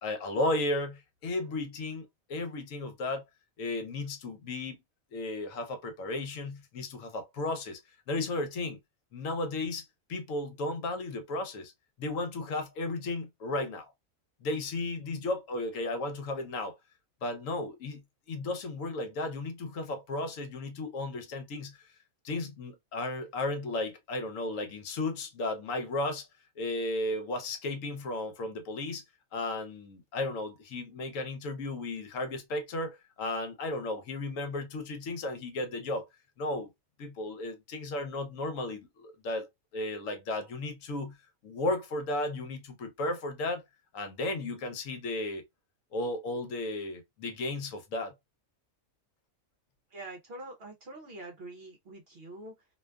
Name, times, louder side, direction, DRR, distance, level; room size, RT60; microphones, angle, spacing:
voice 1, 0.0-3.2 3.6-4.8 5.1-7.8 8.1-8.8 9.1-11.7 12.0-13.9 14.4-16.8 17.2-18.0 18.3-21.9 22.2-26.3 26.6-29.0 29.3-36.1 36.4-36.7 37.0-39.5 39.7-41.2 41.4-43.6 43.9-45.4 45.9-48.1, left 2 dB, 70° left, 1.0 m, -34 dB
voice 2, 49.9-52.7, right 2 dB, 55° right, 0.7 m, -45 dB
2.5 x 2.3 x 2.2 m
omnidirectional pair, 1.5 m